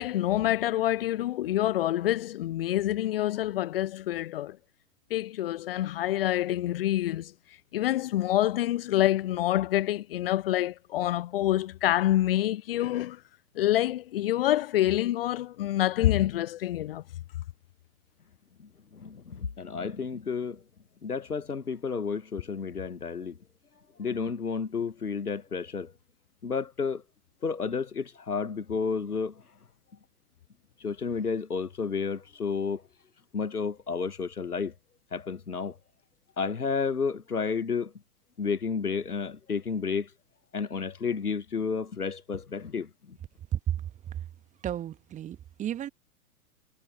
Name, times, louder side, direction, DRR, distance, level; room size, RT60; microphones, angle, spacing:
voice 1, 0.0-4.6 5.1-7.3 7.7-13.2 13.5-17.0, left 14 dB, 40° left, 0.6 m, -27 dB
voice 2, 18.6-20.6 21.0-23.4 24.0-25.9 26.4-27.0 27.4-29.4 30.8-32.8 33.3-34.7 35.1-35.8 36.4-37.9 38.4-40.1 40.5-43.2, left 5 dB, 80° left, 1.3 m, -31 dB
voice 3, 43.5-44.2 44.6-45.9, right 11 dB, 15° right, 1.5 m, -33 dB
figure-of-eight pair, 110°, 45 cm